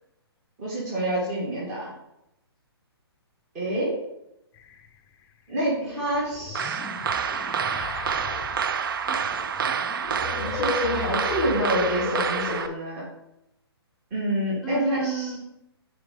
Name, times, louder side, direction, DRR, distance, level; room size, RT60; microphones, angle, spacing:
voice 1, 0.6-1.9 3.5-3.9 5.5-6.8 10.4-13.0 14.1-15.3, right 1 dB, 30° right, -7 dB, 2.9 m, -28 dB
sound 1, 4.6-4.9 6.1-12.7, left 6 dB, 20° left, 0.5 m, -34 dB
sound 2, 6.6-12.7, right 7 dB, 55° right, 0.5 m, -28 dB
voice 2, 9.0-9.8 14.6-15.4, right 3 dB, 5° left, 4 dB, 1.0 m, -33 dB
6.8 x 5.3 x 3.9 m, 0.84 s
figure-of-eight pair, 130°, 14 cm